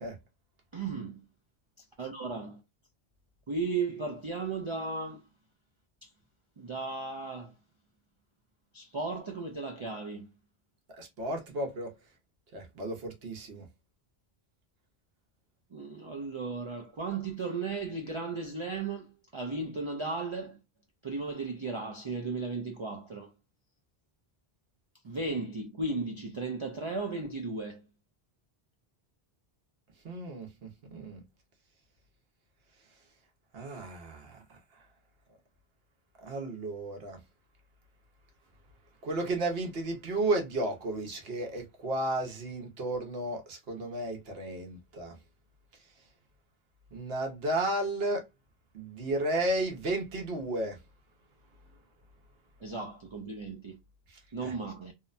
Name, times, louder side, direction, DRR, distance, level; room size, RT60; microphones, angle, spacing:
voice 1, 0.7-1.2 2.0-2.6 3.5-5.2 6.0-6.1 6.6-7.5 8.7-10.3 15.7-20.6 21.0-23.3 25.0-27.8 52.6-53.8 54.3-54.9, right 3 dB, 55° right, 0.3 m, -35 dB
voice 2, 11.0-11.9 12.5-13.6 30.0-31.2 33.5-34.4 36.2-37.2 39.0-45.1 46.9-48.2 48.7-50.8 54.4-54.5, right 1 dB, 75° right, 1.0 m, -33 dB
2.8 x 2.1 x 2.4 m
omnidirectional pair, 1.0 m